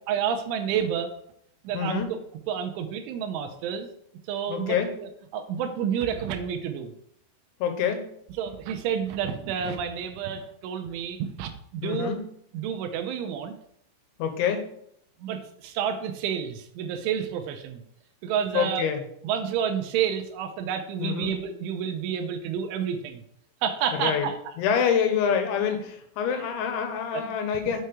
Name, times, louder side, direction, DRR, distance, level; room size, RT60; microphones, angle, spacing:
voice 1, 0.1-1.1 1.6-2.2 2.5-3.9 4.3-6.9 8.4-12.2 12.5-13.6 15.2-17.8 18.2-18.8 19.2-23.2 23.6-24.3 26.3-26.5 27.1-27.4, right 8 dB, 80° right, 5 dB, 3.1 m, -30 dB
voice 2, 1.7-2.1 4.5-4.9 7.6-8.0 11.8-12.2 14.2-14.7 18.5-19.0 21.0-21.3 24.0-24.3 24.6-27.8, left 7 dB, 75° left, 6 dB, 3.4 m, -26 dB
8.1 x 5.6 x 4.7 m, 0.69 s
omnidirectional pair, 5.7 m